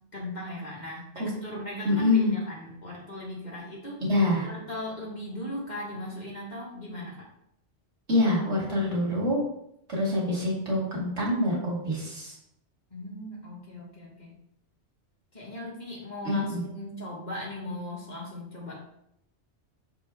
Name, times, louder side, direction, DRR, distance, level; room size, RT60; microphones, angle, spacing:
voice 1, 0.1-4.0 4.4-7.3 12.9-14.3 15.3-18.8, left 1 dB, 40° left, -4 dB, 1.7 m, -38 dB
voice 2, 1.8-2.3 4.1-4.5 8.1-9.4 9.9-12.3 16.2-16.6, left 1 dB, 80° right, -4 dB, 2.4 m, -25 dB
6.8 x 4.6 x 3.5 m, 0.77 s
omnidirectional pair, 1.2 m